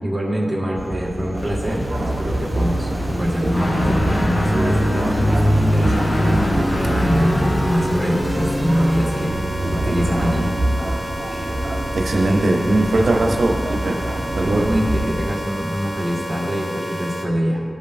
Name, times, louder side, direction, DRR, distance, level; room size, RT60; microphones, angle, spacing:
voice 1, 0.0-9.3 9.7-10.5 14.4-17.6, equal, 5° right, -5 dB, 1.6 m, -24 dB
sound 1, 0.8-15.2, right 1 dB, 35° right, 0.8 m, -26 dB
sound 2, 1.3-17.2, equal, 20° left, 1.3 m, -31 dB
Guitar, 3.5-11.2, equal, 40° left, 1.2 m, -23 dB
voice 2, 11.9-13.9 14.4-14.7, right 2 dB, 80° right, 1 dB, 0.6 m, -19 dB
13.5 x 5.2 x 2.6 m, 2.2 s
wide cardioid pair, 110°, 0 cm